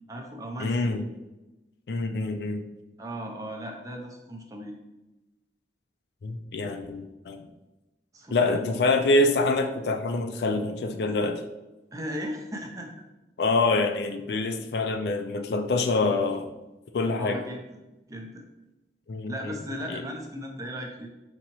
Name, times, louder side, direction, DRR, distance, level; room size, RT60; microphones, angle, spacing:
voice 1, 0.1-1.0 3.0-4.8 8.1-8.6 11.9-12.9 17.2-17.6 18.1-18.4 19.3-21.1, equal, 20° right, 2 dB, 0.5 m, -36 dB
voice 2, 0.6-1.0 1.9-2.6 6.2-7.4 8.3-11.4 13.4-16.5 16.9-17.4 19.1-19.6 19.9-20.0, left 2 dB, 65° left, 6 dB, 0.4 m, -26 dB
5.3 x 2.9 x 2.9 m, 1.0 s
head